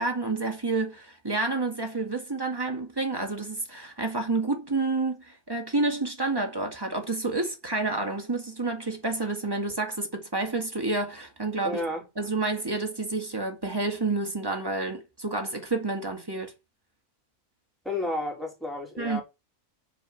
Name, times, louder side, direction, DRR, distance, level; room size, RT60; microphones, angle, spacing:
voice 1, 0.0-11.8 12.2-16.5 19.0-19.2, right 3 dB, 15° right, 2.1 m, -29 dB
voice 2, 11.6-12.0 17.8-19.2, left 1 dB, ahead, 4.1 m, -31 dB
7.1 x 5.1 x 7.1 m
omnidirectional pair, 1.4 m